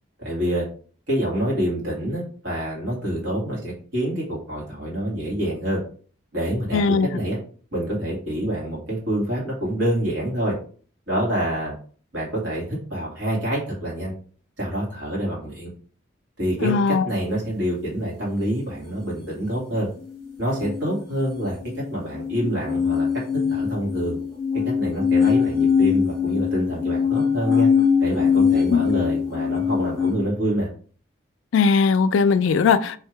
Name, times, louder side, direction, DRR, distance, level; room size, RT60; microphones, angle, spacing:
voice 1, 0.2-0.7 1.1-5.8 6.3-7.4 7.7-10.5 11.1-11.8 12.1-14.1 14.6-15.7 16.4-19.9 20.4-23.1 23.5-24.2 24.5-27.7 28.0-30.7, right 1 dB, 65° right, 2.1 m, -26 dB
voice 2, 6.7-7.1 16.6-17.0 28.7-28.8 31.5-33.0, left 5 dB, 75° left, 0.3 m, -19 dB
sound 1, 20.5-30.1, left 6 dB, 5° left, 1.2 m, -22 dB
3.4 x 2.8 x 4.5 m
head